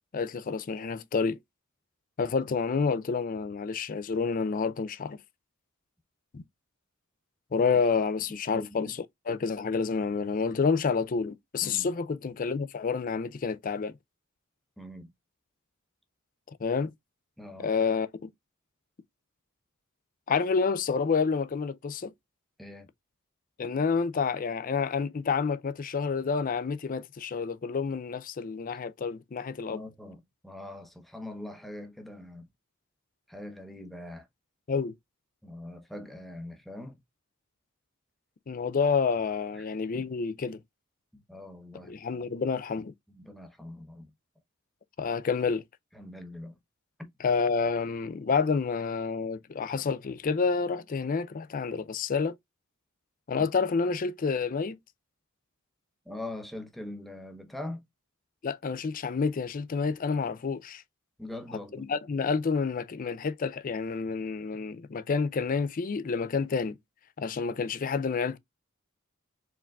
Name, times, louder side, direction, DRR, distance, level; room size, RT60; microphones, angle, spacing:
voice 1, 0.1-1.4 2.2-5.2 6.3-6.4 7.5-9.0 9.3-14.0 16.6-16.9 17.6-18.3 20.3-22.1 23.6-29.8 34.7-34.9 38.5-40.6 41.9-42.9 45.0-45.6 47.2-52.3 53.3-54.8 58.4-60.8 61.8-66.8 67.2-68.4, left 5 dB, 40° left, 0.4 m, -29 dB
voice 2, 8.5-8.9 11.6-11.9 14.8-15.1 17.4-17.7 22.6-22.9 29.7-32.5 33.3-34.3 35.4-37.0 39.5-39.7 41.1-41.9 43.1-44.1 45.9-46.6 47.0-47.1 53.4-53.5 56.0-57.8 61.2-61.9, left 1 dB, ahead, 0.8 m, -42 dB
4.6 x 3.6 x 2.3 m
head